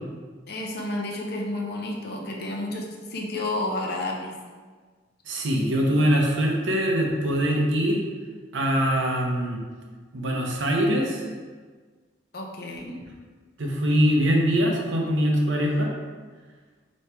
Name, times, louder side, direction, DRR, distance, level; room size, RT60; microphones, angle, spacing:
voice 1, 0.5-4.3 12.3-13.0, left 1 dB, 60° left, -1 dB, 0.7 m, -31 dB
voice 2, 5.3-8.0 8.5-9.6 10.1-11.2 13.6-15.9, equal, 75° right, 0 dB, 0.8 m, -23 dB
4.4 x 3.1 x 3.4 m, 1.4 s
head